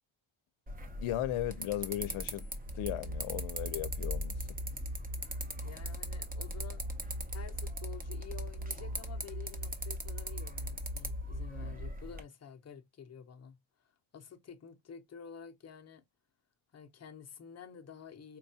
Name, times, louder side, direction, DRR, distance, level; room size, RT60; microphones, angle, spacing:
sound 1, 0.7-12.2, equal, 20° right, 0.5 m, -41 dB
voice 1, 1.0-2.5 2.7-4.5, left 13 dB, 85° left, 0.6 m, -36 dB
sound 2, 2.7-11.9, equal, 60° right, 1.4 m, -41 dB
voice 2, 5.6-6.8 7.3-13.6 14.1-16.0 16.7-18.4, left 7 dB, 35° left, 0.6 m, -50 dB
4.4 x 2.3 x 2.7 m
cardioid pair, 145°, 48 cm